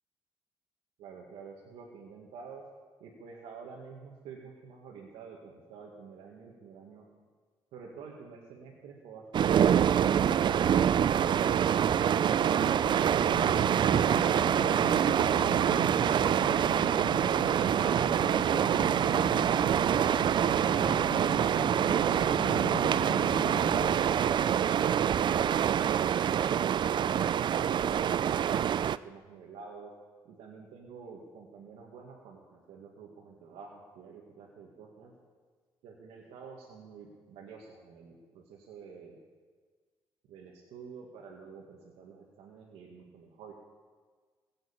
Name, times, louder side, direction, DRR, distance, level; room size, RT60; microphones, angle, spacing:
voice 1, 1.0-2.6 3.0-7.1 7.7-10.3 26.9-29.9 30.3-35.1 35.8-39.2 40.3-43.5, right 5 dB, 85° right, -3 dB, 1.9 m, -49 dB
sound 1, 9.3-29.0, right 9 dB, 50° right, 0.4 m, -26 dB
sound 2, 10.1-24.0, left 9 dB, 55° left, 0.4 m, -42 dB
16.5 x 7.9 x 8.8 m, 1.5 s
supercardioid pair, 70°, 10 cm